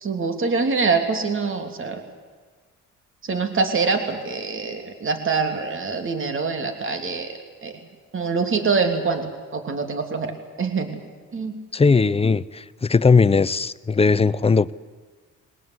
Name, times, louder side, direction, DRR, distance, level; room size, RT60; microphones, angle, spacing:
voice 1, 0.0-2.0 3.2-7.3 7.6-7.7 8.1-10.3 10.6-11.0 11.3-11.6, right 4 dB, 45° right, 6 dB, 3.2 m, -24 dB
voice 2, 11.7-14.7, left 4 dB, 20° left, 16 dB, 0.7 m, -18 dB
22.0 x 18.5 x 9.8 m, 1.5 s
cardioid pair, 90°, 30 cm